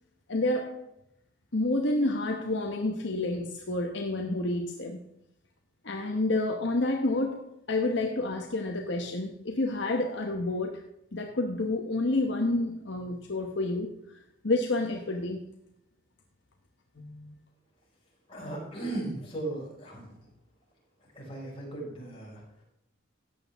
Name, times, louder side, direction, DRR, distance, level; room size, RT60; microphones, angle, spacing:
voice 1, 0.3-0.9 1.5-5.0 5.8-10.8 11.1-14.2 14.4-15.4 17.0-17.3, left 2 dB, 60° left, 2 dB, 1.0 m, -29 dB
voice 2, 18.3-20.1 21.1-22.6, right 2 dB, 25° left, -4 dB, 5.0 m, -37 dB
14.5 x 9.2 x 3.5 m, 0.79 s
head